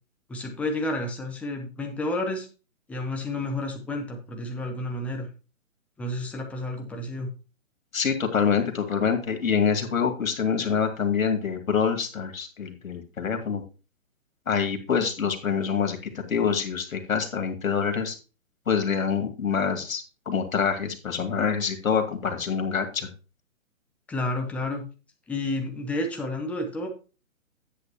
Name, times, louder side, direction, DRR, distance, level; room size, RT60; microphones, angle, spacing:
voice 1, 0.3-2.5 2.9-5.3 6.0-7.3 24.1-24.9 25.3-26.9, left 1 dB, 5° left, 2 dB, 0.6 m, -30 dB
voice 2, 7.9-13.6 14.5-16.0 16.3-18.1 18.7-23.1, left 6 dB, 75° left, 5 dB, 2.6 m, -26 dB
10.5 x 8.3 x 3.0 m, 0.33 s
hypercardioid pair, 145°, 41 cm